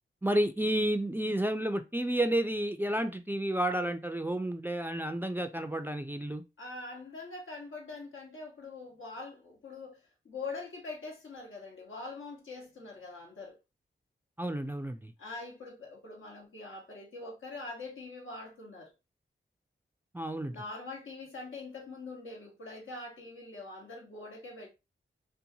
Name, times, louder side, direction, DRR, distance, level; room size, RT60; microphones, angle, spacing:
voice 1, 0.2-6.4 14.4-15.1 20.1-20.6, right 1 dB, 10° right, 0.3 m, -31 dB
voice 2, 6.6-13.6 15.2-18.9 20.4-24.7, left 3 dB, 75° left, 1.0 m, -43 dB
2.7 x 2.2 x 2.7 m
cardioid pair, 45°, 21 cm